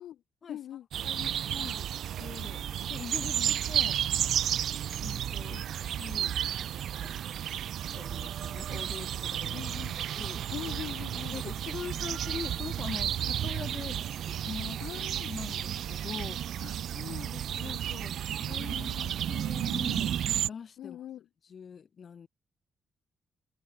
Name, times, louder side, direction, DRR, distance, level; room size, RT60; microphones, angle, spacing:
voice 1, 0.5-0.9 3.2-3.6 5.5-5.7 9.5-10.0 10.5-11.5 14.8-15.3 16.6-17.9 18.7-19.3 20.8-21.3, left 11 dB, 80° left, 7.2 m, -43 dB
sound 1, 0.9-20.5, right 10 dB, 70° right, 0.8 m, -32 dB
voice 2, 1.0-1.9 2.2-2.6 2.9-4.0 5.0-5.6 6.0-6.4 6.8-7.1 7.9-9.6 10.2-10.4 11.3-14.8 15.3-16.4 17.6-18.1 18.4-18.8 19.3-20.2 20.5-21.0 21.5-22.3, left 6 dB, 45° left, 7.9 m, -42 dB
cardioid pair, 115°, 0 cm